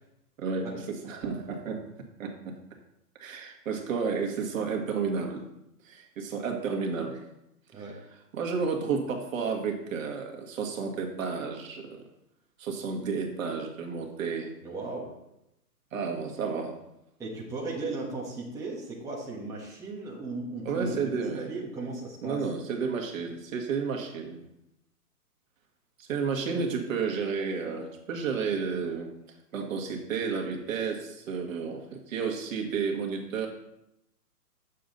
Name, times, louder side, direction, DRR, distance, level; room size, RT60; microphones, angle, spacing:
voice 1, 0.4-1.8 2.2-2.5 3.2-5.5 5.8-7.2 7.8-7.9 8.3-12.0 12.6-14.5 15.9-16.8 20.6-21.5 22.2-24.4 26.0-29.1 29.5-33.5, right 5 dB, 55° right, 3 dB, 1.8 m, -31 dB
voice 2, 14.6-15.1 17.2-22.4, right 3 dB, 5° right, -5 dB, 1.2 m, -36 dB
8.4 x 7.0 x 4.0 m, 0.82 s
hypercardioid pair, 140°, 48 cm